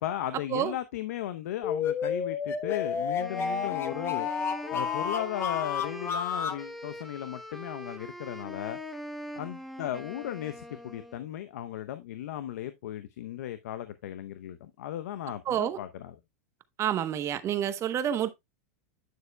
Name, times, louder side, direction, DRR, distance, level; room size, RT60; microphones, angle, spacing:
voice 1, 0.0-4.3 4.7-8.8 9.4-16.2, left 12 dB, 75° left, 0.7 m, -36 dB
sound 1, 1.6-6.6, left 7 dB, 30° left, 1.0 m, -31 dB
Wind instrument woodwind instrument, 3.2-11.3, left 1 dB, ahead, 1.1 m, -42 dB
voice 2, 15.5-15.8 16.8-18.4, right 10 dB, 35° right, 0.9 m, -28 dB
9.4 x 6.5 x 2.2 m
hypercardioid pair, 115°, 8 cm